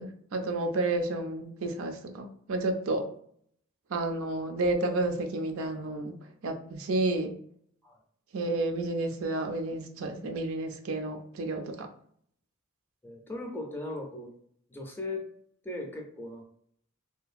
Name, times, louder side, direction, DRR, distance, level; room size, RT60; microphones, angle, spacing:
voice 1, 0.0-3.1 3.9-6.1 6.4-7.3 8.3-11.9, right 2 dB, 75° right, 5 dB, 0.5 m, -31 dB
voice 2, 13.0-14.3 14.7-15.3 15.6-16.4, left 2 dB, 10° left, 1 dB, 0.4 m, -38 dB
2.7 x 2.5 x 2.4 m, 0.63 s
head